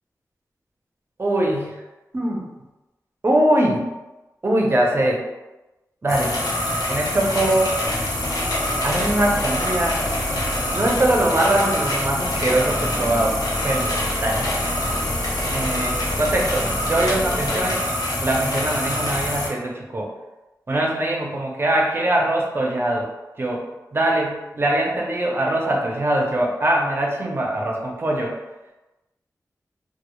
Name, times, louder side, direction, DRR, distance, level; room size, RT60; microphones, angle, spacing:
voice 1, 1.2-1.8 2.1-2.5 3.2-3.9 4.4-5.2 6.0-6.4 6.9-7.7 8.8-10.0 10.7-13.9 14.2-14.4 15.5-17.8 18.2-20.1 20.7-23.1 23.4-23.6 23.9-28.4, right 1 dB, 35° right, -1 dB, 0.5 m, -22 dB
sound 1, 6.1-19.5, left 1 dB, 75° left, 0.6 m, -25 dB
sound 2, 7.8-17.6, equal, 25° left, 0.5 m, -32 dB
2.1 x 2.0 x 2.9 m, 1.0 s
cardioid pair, 55°, 6 cm